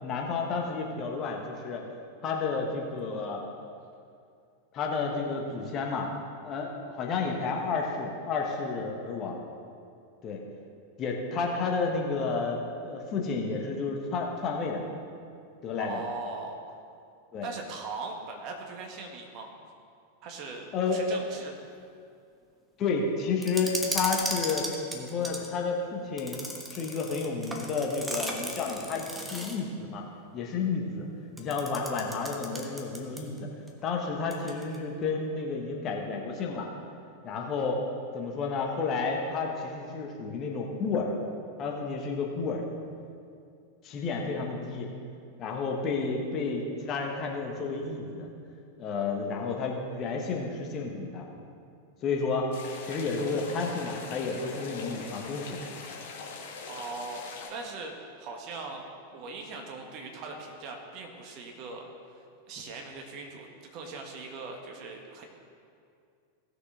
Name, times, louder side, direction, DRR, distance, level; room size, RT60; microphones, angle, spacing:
voice 1, 0.0-1.8 2.2-3.4 4.7-6.1 6.4-9.4 10.2-10.4 11.0-14.8 15.6-16.0 17.3-17.5 20.7-21.1 22.8-24.6 24.9-26.4 26.7-30.0 30.3-31.1 31.4-33.5 33.8-36.7 37.2-37.8 38.1-41.1 41.6-42.7 43.8-44.9 45.4-48.3 48.8-51.2 52.0-52.5 52.8-55.6, left 4 dB, 30° left, 1 dB, 1.4 m, -31 dB
voice 2, 15.8-16.6 17.4-19.6 20.2-21.5 56.7-58.9 59.1-65.2, right 3 dB, 40° right, 2 dB, 1.5 m, -40 dB
sound 1, 23.4-25.5 26.2-29.7 31.4-33.4 33.7-33.8 34.3-34.8, equal, 5° right, 1.3 m, -36 dB
sound 2, 52.5-57.5, left 4 dB, 55° left, 1.7 m, -42 dB
17.0 x 6.5 x 3.8 m, 2.4 s
figure-of-eight pair, 90°, 0 cm